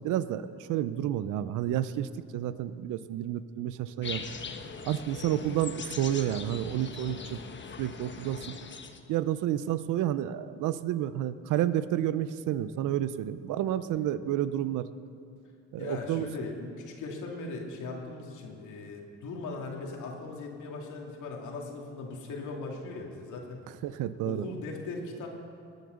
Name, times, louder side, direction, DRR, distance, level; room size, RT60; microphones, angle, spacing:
voice 1, 0.0-4.2 4.8-7.4 7.8-8.5 9.1-14.9 15.7-16.3 23.8-24.5, right 12 dB, 90° right, 14 dB, 0.6 m, -30 dB
sound 1, 4.0-9.0, left 5 dB, 40° left, 1.1 m, -41 dB
voice 2, 15.8-23.6 24.2-25.3, left 3 dB, 80° left, 0 dB, 2.6 m, -39 dB
20.5 x 8.2 x 6.4 m, 2.5 s
cardioid pair, 90°, 30 cm